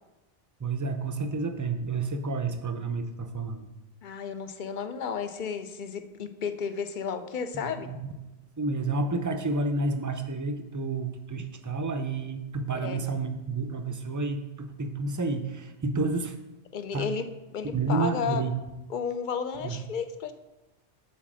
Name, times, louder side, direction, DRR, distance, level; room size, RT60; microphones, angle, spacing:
voice 1, 0.6-3.7 7.5-8.1 8.6-16.3 16.9-17.1 17.7-18.5 19.6-19.8, right 3 dB, 25° right, 7 dB, 0.4 m, -30 dB
voice 2, 4.0-7.9 12.7-13.2 16.7-17.3 17.5-18.4 18.9-20.3, left 6 dB, 55° left, 10 dB, 0.7 m, -33 dB
7.5 x 4.2 x 6.2 m, 1.0 s
omnidirectional pair, 1.1 m